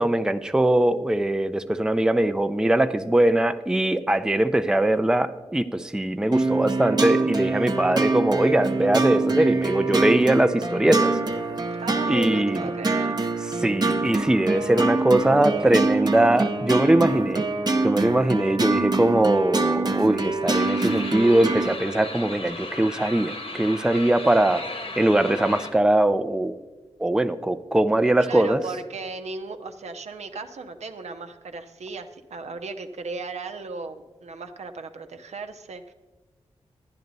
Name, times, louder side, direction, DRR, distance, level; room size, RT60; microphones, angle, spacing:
voice 1, 0.0-11.2 12.1-12.6 13.6-17.5 17.8-24.6 25.0-26.6 27.0-28.6, right 1 dB, 5° right, 10 dB, 0.5 m, -21 dB
sound 1, 6.3-21.8, right 3 dB, 35° right, 0.9 m, -25 dB
voice 2, 11.8-13.2 28.2-35.9, right 4 dB, 75° right, 7 dB, 0.7 m, -36 dB
sound 2, 20.5-25.7, left 2 dB, 60° left, 1.4 m, -36 dB
10.5 x 10.5 x 4.0 m, 1.2 s
cardioid pair, 40°, 11 cm